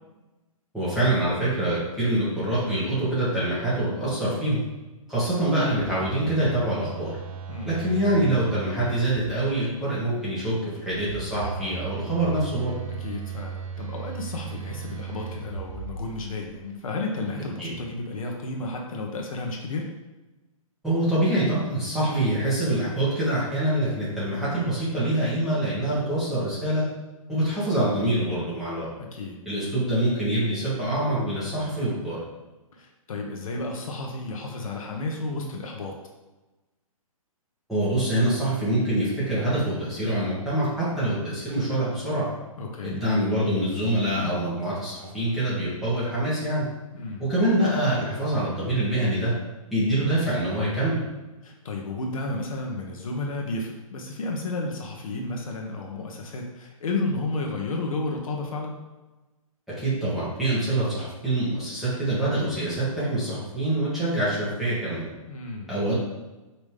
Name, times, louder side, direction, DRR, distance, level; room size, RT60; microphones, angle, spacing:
voice 1, 0.7-4.6 5.1-7.1 7.6-12.7 17.6-17.7 20.8-26.8 27.3-28.9 29.4-32.2 37.7-42.3 42.8-46.7 47.2-49.3 49.7-51.0 59.8-65.1 65.7-65.9, right 1 dB, ahead, -11 dB, 1.2 m, -25 dB
Telephone, 5.7-9.7 10.8-16.5, right 7 dB, 65° right, 0.6 m, -37 dB
voice 2, 7.5-7.8 12.8-19.9 29.0-29.4 32.7-35.9 42.6-43.0 46.9-47.3 51.4-58.8 65.3-65.7, left 2 dB, 70° left, 1 dB, 1.0 m, -32 dB
5.3 x 3.0 x 3.3 m, 1.1 s
hypercardioid pair, 165°, 18 cm